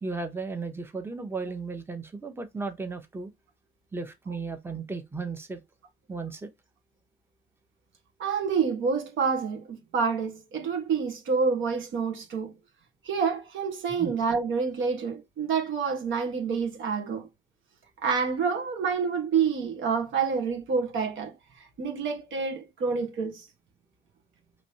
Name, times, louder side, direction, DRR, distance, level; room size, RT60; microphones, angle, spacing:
voice 1, 0.0-3.3 3.9-5.6 6.1-6.5 14.0-14.1, right 4 dB, 10° right, 0.8 m, -35 dB
voice 2, 8.2-12.5 13.0-17.3 18.0-23.4, right 5 dB, 80° right, 1.3 m, -28 dB
5.0 x 3.1 x 2.8 m
cardioid pair, 90°, 20 cm